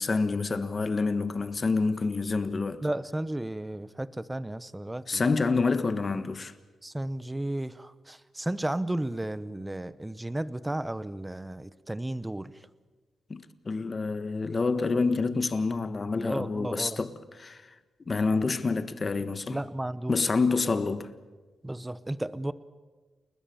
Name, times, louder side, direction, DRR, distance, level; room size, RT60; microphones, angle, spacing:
voice 1, 0.0-2.8 5.1-6.5 13.3-17.6 18.1-19.6 20.1-21.1, left 4 dB, 35° left, 1.4 m, -27 dB
voice 2, 2.8-5.2 6.8-12.5 16.2-17.0 19.5-20.2 21.6-22.5, right 1 dB, 10° right, 0.9 m, -33 dB
29.5 x 21.0 x 7.1 m
cardioid pair, 115°, 0 cm